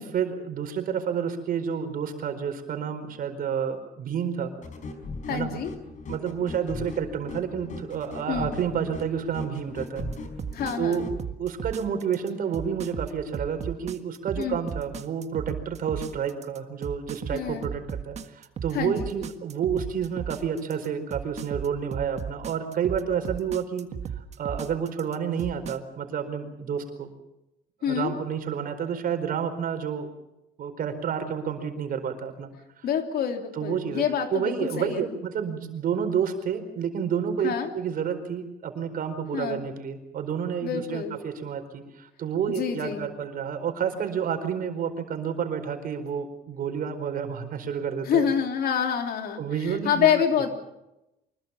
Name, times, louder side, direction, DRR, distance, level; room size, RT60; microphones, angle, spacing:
voice 1, 0.0-4.5 5.3-5.5 6.1-10.0 10.8-11.1 11.4-23.9 24.4-27.1 27.8-30.1 30.6-32.5 32.8-32.9 33.5-34.0 34.3-48.3 49.4-50.1, right 7 dB, 55° right, 7 dB, 4.5 m, -30 dB
sound 1, 4.6-11.2, left 3 dB, 50° left, 4.8 m, -39 dB
voice 2, 5.3-5.7 8.3-8.5 10.5-11.0 14.4-14.6 17.3-17.7 18.7-18.9 27.8-28.1 32.8-35.0 37.4-37.7 39.3-39.6 40.6-41.1 42.6-43.0 48.1-50.5, left 8 dB, 65° left, 5 dB, 3.3 m, -27 dB
sound 2, 10.0-25.8, right 7 dB, 40° right, 1.6 m, -35 dB
25.0 x 21.5 x 7.1 m, 0.91 s
cardioid pair, 110°, 17 cm